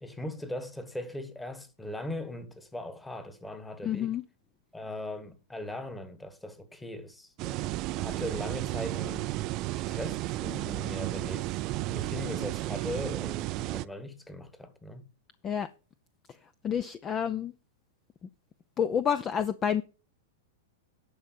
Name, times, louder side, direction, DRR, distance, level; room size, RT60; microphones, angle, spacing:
voice 1, 0.0-4.2 4.7-9.3 9.8-11.6 11.9-15.1, left 1 dB, 5° left, 1.4 m, -39 dB
voice 2, 3.8-4.2 15.4-15.7 16.6-17.5 18.8-19.8, left 8 dB, 25° left, 0.6 m, -28 dB
sound 1, 7.4-13.9, right 17 dB, 40° right, 0.4 m, -33 dB
11.0 x 5.6 x 6.3 m
hypercardioid pair, 135°, 0 cm